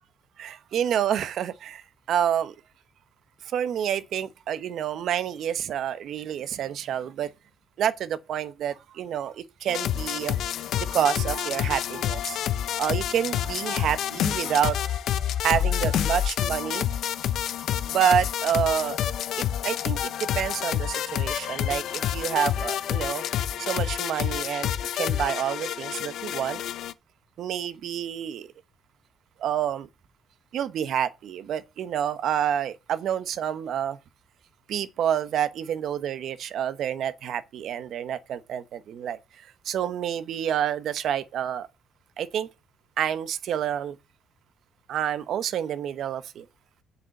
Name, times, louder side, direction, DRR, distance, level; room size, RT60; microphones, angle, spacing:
voice 1, 0.4-1.8 2.1-2.5 3.5-7.3 7.8-10.4 10.8-12.4 12.8-16.9 17.8-19.0 19.4-23.2 23.6-26.6 27.4-28.5 29.4-29.9 30.5-34.0 34.7-39.2 39.6-41.7 42.2-42.5 43.0-44.0 44.9-46.5, right 9 dB, 65° right, 1.0 m, -28 dB
sound 1, 9.7-26.9, left 10 dB, 70° left, 0.6 m, -28 dB
7.9 x 6.9 x 6.5 m
cardioid pair, 90°, 0 cm